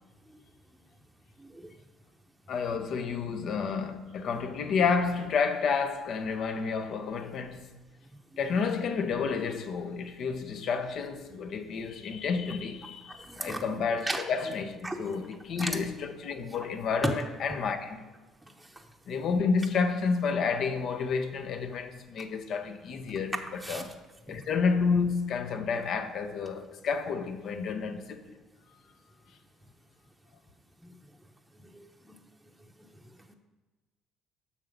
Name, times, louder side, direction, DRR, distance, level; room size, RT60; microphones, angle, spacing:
voice 1, 1.4-1.7 13.1-13.6 14.1-14.2 14.8-15.0 15.6-15.7 17.0-17.1 18.6-18.7 23.6-23.9 24.3-24.4 30.8-30.9 31.7-32.2, right 1 dB, 10° right, 0.8 m, -34 dB
voice 2, 2.5-7.7 8.4-18.1 19.1-24.0 24.3-28.3, left 5 dB, 60° left, 0.8 m, -30 dB
7.4 x 5.9 x 5.2 m
supercardioid pair, 90°, 0 cm